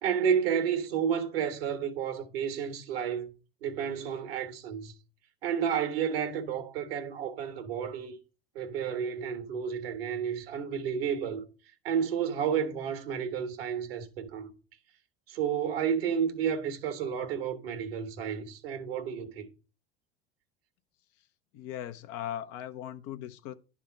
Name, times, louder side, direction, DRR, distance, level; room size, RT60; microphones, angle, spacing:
voice 1, 0.0-3.3 3.6-4.9 5.4-8.1 8.5-11.4 11.8-14.5 15.3-19.5, right 7 dB, 75° right, 1.6 m, -31 dB
voice 2, 21.5-23.5, left 11 dB, 55° left, 0.8 m, -39 dB
11.0 x 3.7 x 5.1 m
hypercardioid pair, 80°, 30 cm